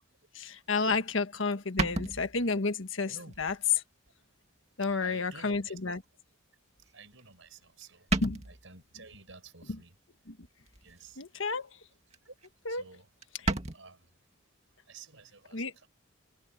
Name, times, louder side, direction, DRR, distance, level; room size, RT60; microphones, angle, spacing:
voice 1, 0.3-3.5 4.8-6.0 8.2-8.4 10.3-10.4 11.2-11.7 12.6-12.8 15.5-15.7, left 3 dB, 70° left, 1.5 m, -31 dB
sound 1, 1.0-1.1 1.8-2.7 3.3-3.6 4.1-4.2 5.4-5.5 7.2-7.5 7.8-7.9 8.1-8.7 10.7-11.1 11.5-11.8 12.1-12.2 12.4-12.5 12.8-12.9 13.2-13.8, right 2 dB, 30° right, 2.2 m, -33 dB
voice 2, 4.9-5.7 6.8-8.1 8.5-10.0 10.8-11.2 12.2-12.4 12.7-13.1 13.5-14.1 14.9-15.9, right 4 dB, 70° right, 5.1 m, -51 dB
head